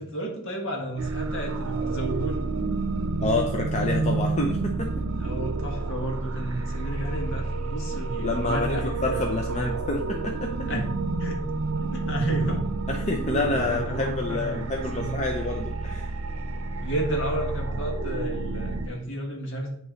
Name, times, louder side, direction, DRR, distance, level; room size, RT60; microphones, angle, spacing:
voice 1, 0.0-2.4 5.2-9.8 10.7-10.9 11.2-11.4 11.8-12.6 13.1-15.2 16.8-19.7, right 1 dB, 60° left, 0 dB, 1.6 m, -32 dB
Cosmos & Eternity, 1.0-18.9, right 3 dB, 75° right, 0.6 m, -30 dB
voice 2, 3.2-4.9 7.9-10.7 12.9-16.1, left 2 dB, 30° left, 1 dB, 0.6 m, -28 dB
9.0 x 3.1 x 5.0 m, 0.71 s
head